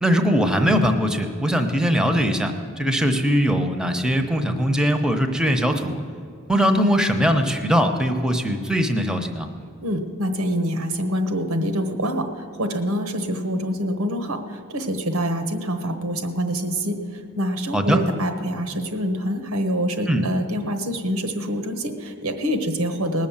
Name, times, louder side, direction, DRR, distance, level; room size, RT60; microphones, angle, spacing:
voice 1, 0.0-6.0 6.5-9.5 17.7-18.0 20.1-20.2, equal, 5° right, 6 dB, 0.9 m, -21 dB
voice 2, 9.8-23.3, equal, 90° right, 7 dB, 1.2 m, -26 dB
19.5 x 6.5 x 7.3 m, 2.2 s
head